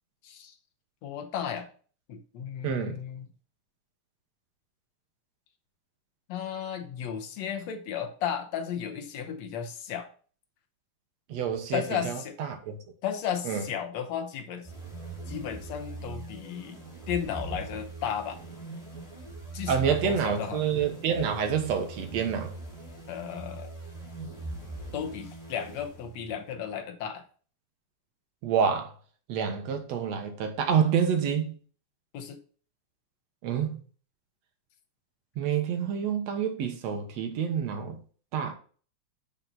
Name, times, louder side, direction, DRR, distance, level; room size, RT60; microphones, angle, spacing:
voice 1, 0.2-0.5 1.0-1.7 2.1-3.3 6.3-10.1 11.7-12.4 13.0-14.7 15.3-16.8 17.1-18.4 19.5-20.6 23.1-23.7 24.9-27.2 32.1-32.4, left 8 dB, 65° left, 2.0 m, -34 dB
voice 2, 2.6-3.0 11.3-12.8 13.5-13.6 19.7-22.5 28.4-28.9 29.3-31.6 33.4-33.8 35.4-38.0 38.3-38.5, right 7 dB, 65° right, 2.2 m, -28 dB
sound 1, 14.6-26.4, right 2 dB, 10° left, 4.7 m, -41 dB
10.5 x 5.4 x 4.0 m
omnidirectional pair, 3.6 m